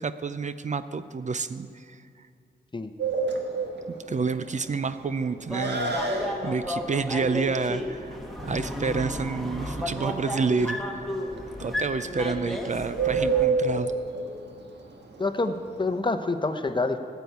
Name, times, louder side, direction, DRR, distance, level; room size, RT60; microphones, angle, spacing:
voice 1, 0.0-2.0 4.1-8.2 8.4-10.8 11.6-13.9, right 4 dB, 45° right, 12 dB, 0.5 m, -29 dB
Bird, 3.0-16.0, right 4 dB, 85° right, 1.4 m, -30 dB
sound 1, 5.5-13.5, left 1 dB, ahead, 1.7 m, -33 dB
voice 2, 15.2-17.0, left 3 dB, 25° left, 8 dB, 0.8 m, -27 dB
14.0 x 7.0 x 9.3 m, 2.5 s
wide cardioid pair, 85°, 18 cm